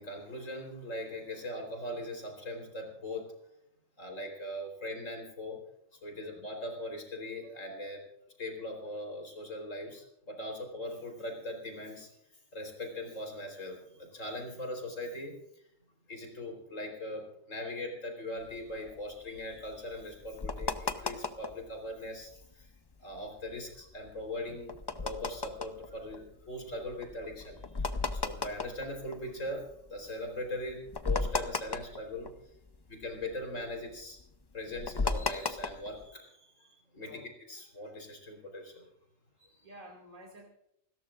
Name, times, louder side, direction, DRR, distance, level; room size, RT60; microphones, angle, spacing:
voice 1, 0.0-3.2 4.0-5.6 6.0-8.0 8.4-12.1 12.5-15.4 16.1-22.7 23.0-32.3 32.9-34.2 34.5-37.1 37.5-38.9 39.4-39.5, left 1 dB, 75° left, 3 dB, 4.4 m, -40 dB
voice 2, 6.1-6.5 37.0-37.3 39.6-40.5, equal, 30° right, -2 dB, 2.5 m, -51 dB
sound 1, 18.5-21.7 22.1-22.2 22.4-22.7 23.1-29.8 30.3-30.4 30.6-32.8 33.0-36.0, left 3 dB, 25° left, 0.5 m, -35 dB
28.5 x 13.5 x 2.5 m, 0.77 s
omnidirectional pair, 1.4 m